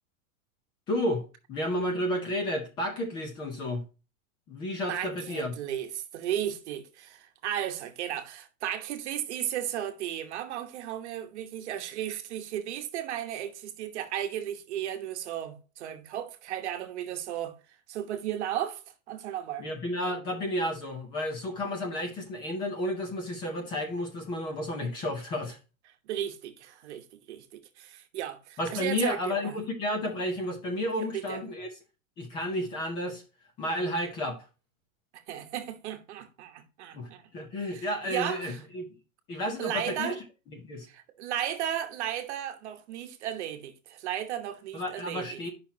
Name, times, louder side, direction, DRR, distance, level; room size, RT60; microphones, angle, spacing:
voice 1, 0.9-3.8 4.5-5.6 19.6-25.6 28.6-31.7 32.2-33.2 33.6-34.5 36.9-38.8 39.3-40.1 40.5-40.9 44.7-45.5, left 1 dB, 10° left, 0.5 m, -32 dB
voice 2, 4.9-17.6 17.9-18.8 19.1-19.7 26.1-29.6 31.0-31.4 35.1-37.3 37.7-38.6 39.6-40.2 40.9-45.4, right 11 dB, 55° right, 1.1 m, -35 dB
8.9 x 5.8 x 2.8 m
supercardioid pair, 180°, 40 cm